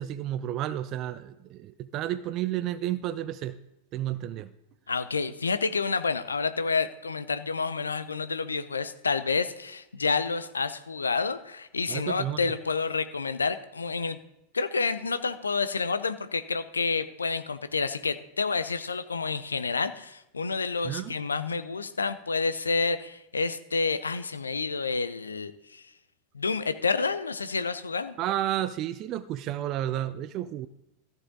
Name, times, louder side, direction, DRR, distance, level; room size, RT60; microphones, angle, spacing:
voice 1, 0.0-3.6 3.9-4.5 11.9-12.4 20.8-21.2 28.2-30.7, right 12 dB, 35° right, 14 dB, 0.4 m, -31 dB
voice 2, 4.9-14.2 14.5-25.8 26.3-28.2, left 4 dB, 75° left, 12 dB, 0.6 m, -29 dB
14.5 x 7.3 x 3.9 m, 0.90 s
figure-of-eight pair, 90°, 0 cm